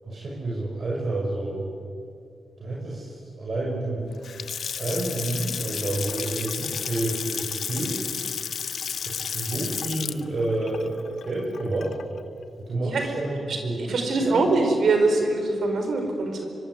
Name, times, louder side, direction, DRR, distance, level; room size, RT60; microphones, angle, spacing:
voice 1, 0.0-1.6 2.6-4.1 4.8-8.0 9.0-12.0 12.6-14.5, right 2 dB, 50° right, -3 dB, 6.3 m, -29 dB
Water tap faucet / Sink (filling or washing) / Splash splatter, 4.1-12.2, left 7 dB, 65° left, 0.8 m, -32 dB
voice 2, 13.9-16.5, right 3 dB, 70° right, 4 dB, 4.8 m, -23 dB
24.5 x 24.5 x 9.8 m, 2.5 s
cardioid pair, 90°, 0 cm